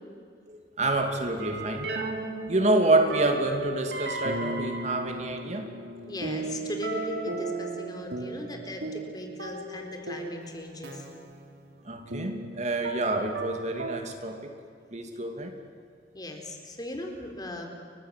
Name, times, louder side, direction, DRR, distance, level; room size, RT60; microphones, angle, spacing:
voice 1, 0.5-2.0 2.5-5.7 11.8-14.5 14.9-15.5, right 2 dB, 40° right, 4 dB, 2.6 m, -27 dB
sound 1, 1.4-14.0, right 2 dB, 70° right, 3.5 m, -35 dB
voice 2, 6.1-11.0 16.1-17.7, left 1 dB, 25° left, 3 dB, 4.0 m, -37 dB
30.0 x 24.0 x 7.7 m, 2.3 s
head